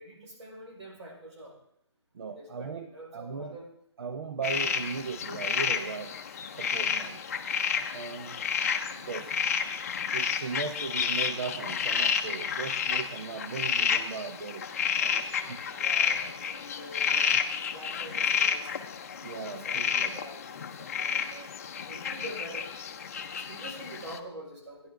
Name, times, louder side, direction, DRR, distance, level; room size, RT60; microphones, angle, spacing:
voice 1, 0.0-1.6 2.4-3.7 15.8-17.4 17.7-18.8 19.5-22.7 23.4-24.9, right 1 dB, 75° right, -1 dB, 5.4 m, -45 dB
voice 2, 2.1-3.6 4.0-6.1 6.5-7.2 7.8-8.4 8.9-9.3 10.1-14.7 14.9-15.6 17.3-17.4 19.2-20.3, right 5 dB, 55° right, 8 dB, 0.7 m, -38 dB
sound 1, 4.4-24.2, left 7 dB, 30° left, 0.6 m, -30 dB
15.5 x 10.5 x 3.8 m, 0.71 s
hypercardioid pair, 175°, 15 cm